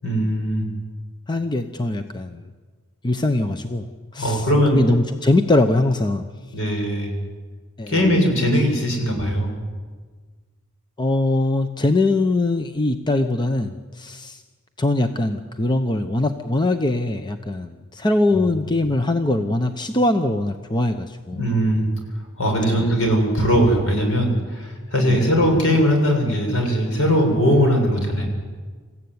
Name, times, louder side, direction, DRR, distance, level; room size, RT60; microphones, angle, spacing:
voice 1, 0.0-0.7 4.2-4.8 6.5-7.1 7.9-9.5 18.3-18.5 21.3-21.9 22.4-28.3, equal, 65° left, 2 dB, 7.0 m, -20 dB
voice 2, 1.3-2.4 3.0-6.3 7.8-8.1 11.0-14.4 14.8-21.4 22.7-22.9 25.0-25.2, left 2 dB, 20° left, 7 dB, 0.8 m, -22 dB
27.5 x 15.5 x 9.6 m, 1.5 s
head